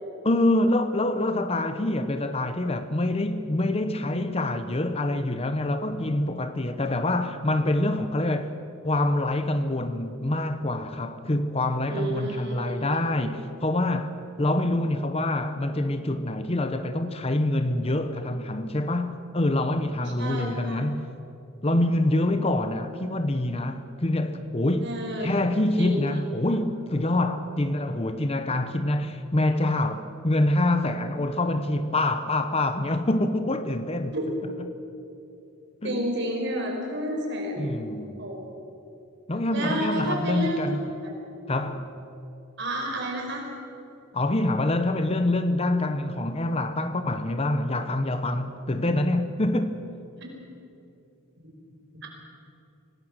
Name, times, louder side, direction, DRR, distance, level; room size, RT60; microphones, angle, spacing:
voice 1, 0.2-8.5 8.8-21.1 21.6-25.0 25.2-34.1 35.8-36.1 37.6-38.3 39.3-40.8 41.5-41.9 44.1-49.8, left 1 dB, 30° left, 0.8 m, -26 dB
voice 2, 11.9-13.0 20.2-20.9 24.8-25.3 25.8-26.0 34.1-34.3 35.8-37.7 38.2-38.4 39.5-40.6 41.0-41.1 42.6-43.4 52.0-52.1, right 1 dB, 55° right, 5.1 m, -30 dB
26.0 x 18.5 x 6.5 m
head